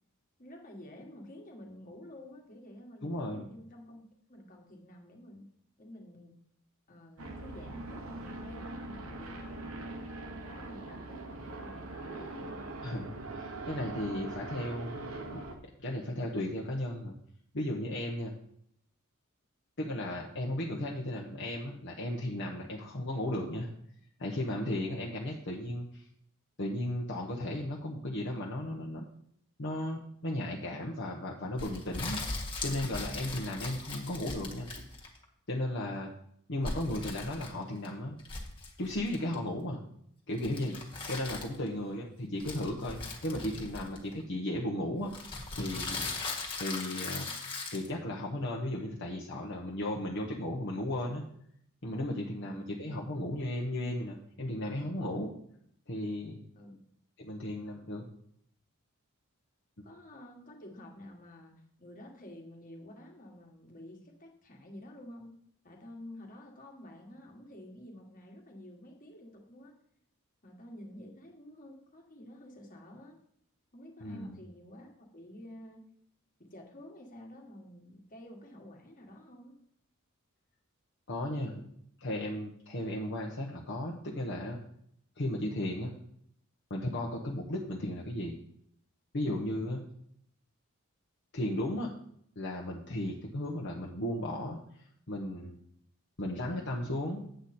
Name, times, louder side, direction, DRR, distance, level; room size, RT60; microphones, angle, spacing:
voice 1, 0.4-5.5 5.8-6.3 6.9-10.0 10.3-12.7 52.3-52.7 56.5-56.8 59.8-61.5 61.8-65.3 65.6-69.7 70.4-73.2 73.7-75.8 76.4-79.6, left 1 dB, 40° left, 1 dB, 1.8 m, -50 dB
voice 2, 3.0-3.4 12.8-15.0 15.3-15.4 15.8-17.1 17.5-18.3 19.8-23.7 24.2-26.0 26.6-29.0 29.6-32.2 32.6-34.7 35.5-36.1 36.5-38.1 38.8-39.8 40.3-40.8 41.1-45.1 45.5-46.0 46.6-47.3 47.7-51.2 51.8-55.3 55.9-56.4 57.2-58.0 74.0-74.4 81.1-81.5 82.0-84.6 85.2-85.9 86.7-88.4 89.1-89.8 91.3-91.9 92.4-94.6 95.1-95.6 96.2-97.3, left 1 dB, 55° left, -2 dB, 1.1 m, -35 dB
sound 1, 7.2-15.5, right 2 dB, 70° right, 1.3 m, -42 dB
sound 2, 31.6-35.2 36.6-37.9 38.2-39.3 40.4-41.7 42.4-44.2 45.1-47.9, left 3 dB, 25° left, 1.8 m, -39 dB
8.2 x 8.0 x 4.3 m, 0.70 s
head